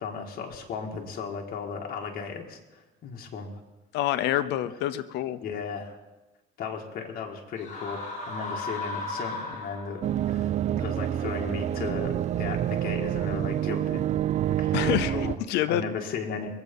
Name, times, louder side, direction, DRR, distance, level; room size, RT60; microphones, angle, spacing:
voice 1, 0.0-3.5 5.4-6.0 6.6-14.1 14.5-15.3 15.7-16.5, left 5 dB, 60° left, 1 dB, 2.0 m, -36 dB
voice 2, 3.9-5.4 14.7-15.2 15.5-15.8, left 12 dB, 85° left, 13 dB, 0.8 m, -26 dB
sound 1, 7.6-10.2, left 2 dB, 45° left, 3.5 m, -35 dB
sound 2, 10.0-15.4, right 11 dB, 45° right, 0.4 m, -27 dB
22.0 x 8.1 x 5.4 m, 1.1 s
cardioid pair, 110°, 17 cm